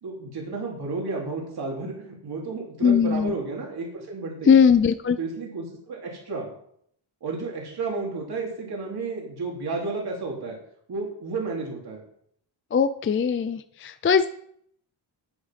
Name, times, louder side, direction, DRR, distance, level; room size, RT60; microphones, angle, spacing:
voice 1, 0.0-4.6 5.2-6.5 7.2-10.6 10.9-12.0, right 3 dB, 55° right, -2 dB, 3.0 m, -32 dB
voice 2, 2.8-3.3 4.5-5.2 12.7-14.3, left 6 dB, 30° left, 11 dB, 0.4 m, -20 dB
8.8 x 8.4 x 5.9 m, 0.68 s
wide cardioid pair, 130°, 46 cm